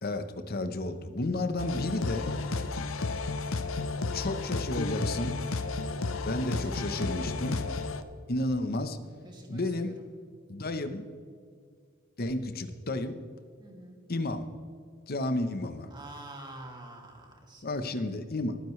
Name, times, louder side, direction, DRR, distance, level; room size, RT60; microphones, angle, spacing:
voice 1, 0.0-2.3 4.1-5.4 6.2-7.6 8.3-9.0 9.5-10.0 10.5-11.1 12.2-13.2 14.1-14.5 15.1-15.9 17.6-18.6, left 2 dB, 50° left, 8 dB, 1.0 m, -32 dB
sound 1, 1.6-8.0, left 3 dB, 80° left, 0.8 m, -32 dB
voice 2, 5.8-7.2 9.2-10.1 13.6-14.0 15.9-18.1, right 1 dB, 20° right, 0 dB, 2.4 m, -48 dB
22.0 x 9.6 x 3.3 m, 2.1 s
head